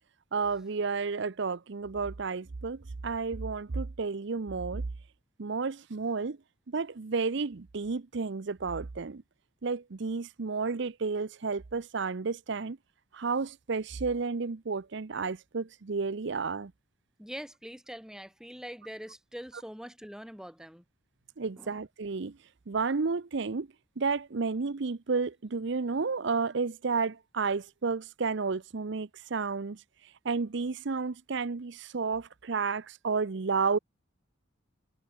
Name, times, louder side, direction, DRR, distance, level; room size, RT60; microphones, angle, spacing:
voice 1, 0.3-4.8 5.4-6.4 6.7-9.2 9.6-12.8 13.1-16.7 21.4-22.4 22.7-23.7 24.0-33.8, right 4 dB, 60° right, 0.7 m, -31 dB
voice 2, 17.2-20.8 21.6-21.8, equal, 5° right, 7.4 m, -43 dB
head